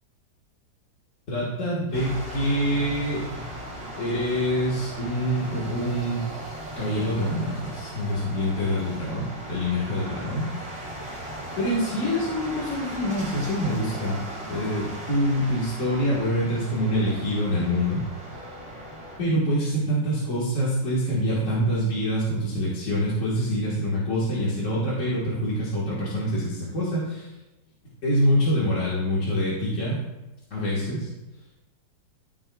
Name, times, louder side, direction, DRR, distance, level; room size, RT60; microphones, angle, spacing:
voice 1, 1.3-3.2 4.0-6.3 6.8-10.5 11.6-14.2 14.5-18.1 19.2-27.3 28.0-30.0 30.5-31.1, equal, 45° left, -7 dB, 1.8 m, -25 dB
sound 1, 1.9-19.2, right 1 dB, 20° right, 1.9 m, -37 dB
13.5 x 6.6 x 2.3 m, 1.0 s
omnidirectional pair, 2.0 m